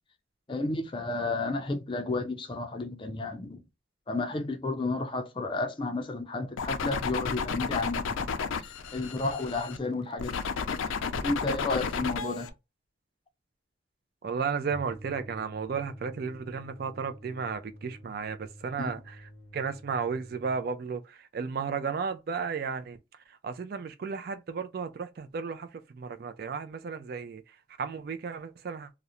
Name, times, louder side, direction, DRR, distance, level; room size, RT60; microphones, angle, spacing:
voice 1, 0.5-3.6 4.1-8.3 8.6-10.4 11.2-12.5 18.8-19.0, left 3 dB, 25° left, 0.4 m, -32 dB
sound 1, 6.6-9.8 10.2-12.5, left 5 dB, 90° left, 0.4 m, -32 dB
voice 2, 14.2-23.0 23.3-28.9, right 5 dB, 50° right, 0.3 m, -34 dB
sound 2, 14.7-20.7, equal, 65° right, 0.8 m, -48 dB
2.4 x 2.0 x 2.8 m
head